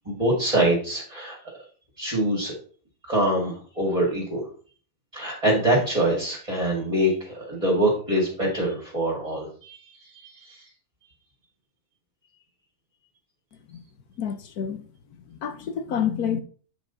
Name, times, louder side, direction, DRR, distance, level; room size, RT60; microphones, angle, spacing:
voice 1, 0.1-1.4 2.0-2.5 3.1-4.4 5.1-10.6, right 1 dB, 25° right, 2.5 m, -24 dB
voice 2, 14.2-14.8 15.3-16.4, left 8 dB, 75° left, 1.5 m, -28 dB
8.9 x 5.2 x 4.1 m
omnidirectional pair, 1.7 m